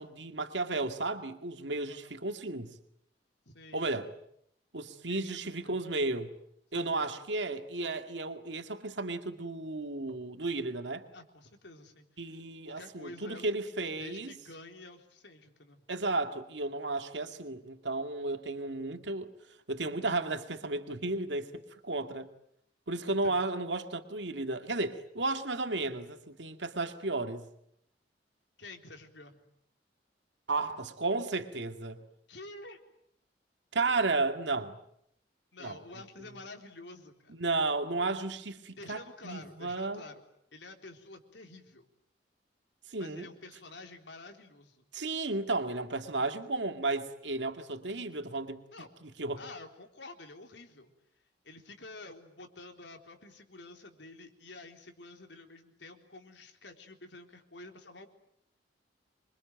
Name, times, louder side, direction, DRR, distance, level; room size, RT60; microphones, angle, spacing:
voice 1, 0.0-2.7 3.7-4.1 4.7-6.3 6.7-11.0 12.2-14.3 15.9-19.3 19.7-22.3 22.9-27.5 30.5-32.0 33.7-34.8 35.6-35.8 37.4-40.0 42.9-43.3 44.9-48.6 49.0-49.4, right 3 dB, 85° right, 7 dB, 2.2 m, -33 dB
voice 2, 3.5-4.1 5.1-5.9 6.7-7.2 11.1-13.4 14.0-15.8 23.0-23.4 28.6-29.4 32.3-32.8 35.5-37.4 38.8-40.2 40.5-41.9 43.0-44.8 48.7-48.9 49.4-50.9 51.4-58.1, left 2 dB, 80° left, 4 dB, 3.9 m, -49 dB
27.0 x 23.5 x 9.1 m, 0.73 s
head